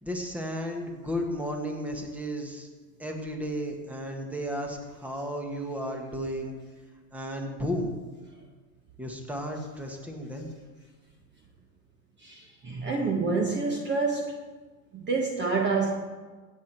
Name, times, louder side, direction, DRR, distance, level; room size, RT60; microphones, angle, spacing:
voice 1, 0.0-2.7 3.0-6.5 7.1-7.9 9.0-10.5, equal, 5° right, 1.5 m, -33 dB
voice 2, 12.2-14.4 14.9-15.9, right 4 dB, 20° right, 1.2 m, -27 dB
16.0 x 8.0 x 4.5 m
hypercardioid pair, 125°, 48 cm